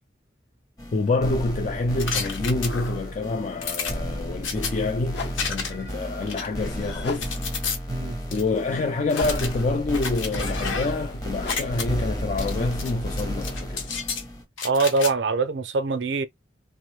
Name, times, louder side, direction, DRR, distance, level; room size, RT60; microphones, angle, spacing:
sound 1, 0.8-14.4, equal, 20° left, 0.7 m, -33 dB
voice 1, 0.9-7.3 8.3-13.9, left 3 dB, 40° left, 0.3 m, -27 dB
sound 2, 2.0-3.1 3.6-4.7 5.3-5.9 6.3-7.8 8.3-8.4 9.1-11.1 11.4-11.8 12.4-12.9 13.2-14.2 14.6-15.1, left 5 dB, 90° left, 0.9 m, -32 dB
sound 3, 5.1-13.9, left 4 dB, 60° left, 0.8 m, -41 dB
voice 2, 14.6-16.3, right 3 dB, 65° right, 0.5 m, -23 dB
3.0 x 2.0 x 3.1 m
head